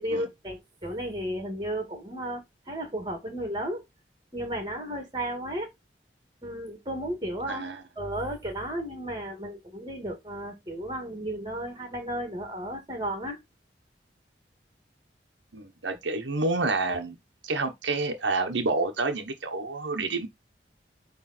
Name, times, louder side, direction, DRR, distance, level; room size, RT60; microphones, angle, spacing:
voice 1, 0.0-3.8 4.3-5.7 6.4-7.7 8.0-13.4, right 1 dB, 25° right, 2.3 m, -34 dB
voice 2, 7.5-7.8 15.5-17.2 17.4-20.3, right 3 dB, 80° right, 1.2 m, -28 dB
9.0 x 3.5 x 4.3 m
head